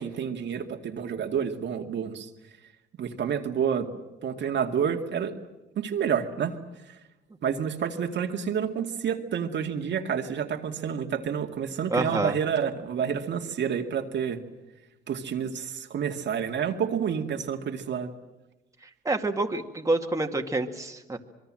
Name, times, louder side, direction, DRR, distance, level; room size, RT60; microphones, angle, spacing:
voice 1, 0.0-2.3 3.0-3.9 4.2-5.4 5.8-6.6 7.4-14.4 15.1-18.1, right 7 dB, 65° right, 3 dB, 2.2 m, -29 dB
voice 2, 11.9-12.3 19.1-21.2, right 2 dB, 15° right, 3 dB, 2.2 m, -27 dB
26.0 x 22.5 x 7.6 m, 1.0 s
cardioid pair, 90°, 20 cm